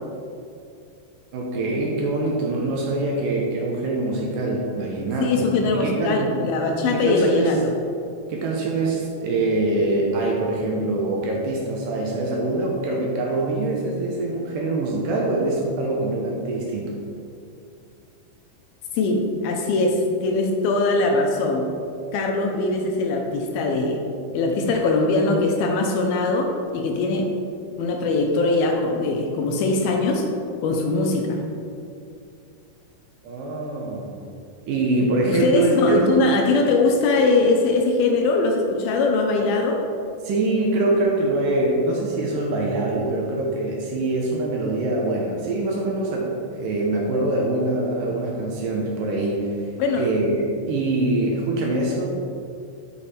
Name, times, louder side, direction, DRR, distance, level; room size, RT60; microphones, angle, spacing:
voice 1, 1.3-6.3 6.9-7.5 8.3-17.0 33.2-34.2 34.7-36.2 40.2-52.1, right 2 dB, 80° right, -2 dB, 2.0 m, -24 dB
voice 2, 5.2-7.6 18.9-21.6 22.1-24.0 24.3-27.3 27.8-30.3 30.6-31.4 35.3-39.8 49.8-50.1, left 3 dB, 80° left, 2 dB, 2.4 m, -21 dB
7.0 x 5.0 x 4.2 m, 2.4 s
omnidirectional pair, 4.6 m